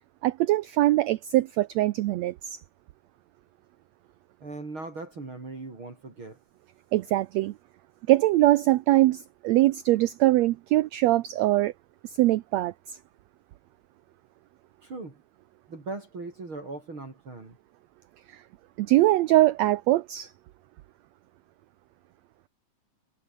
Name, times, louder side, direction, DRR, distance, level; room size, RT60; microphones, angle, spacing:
voice 1, 0.2-2.6 6.9-7.5 8.1-11.7 12.2-12.7 18.3-18.4 18.8-20.3, right 16 dB, 80° right, 1.5 m, -22 dB
voice 2, 4.4-6.4 14.8-15.2 15.7-17.6, right 3 dB, 35° right, 5.5 m, -39 dB
omnidirectional pair, 3.8 m